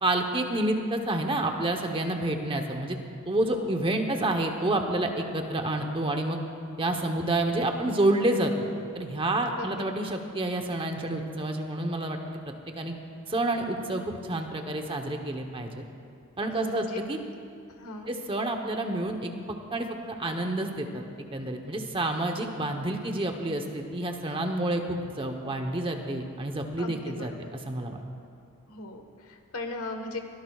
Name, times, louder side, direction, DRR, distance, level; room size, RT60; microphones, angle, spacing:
voice 1, 0.0-3.0 3.3-6.4 6.8-12.4 12.7-12.9 13.3-15.8 16.4-17.2 18.1-19.3 19.7-21.0 21.3-27.3 27.6-28.0, right 1 dB, 25° right, 4 dB, 0.9 m, -29 dB
voice 2, 3.5-3.9 9.6-9.8 10.1-10.2 16.5-17.0 17.7-18.1 26.8-27.5 28.7-30.2, left 2 dB, 75° left, 5 dB, 1.4 m, -38 dB
23.5 x 18.0 x 2.4 m, 2.4 s
head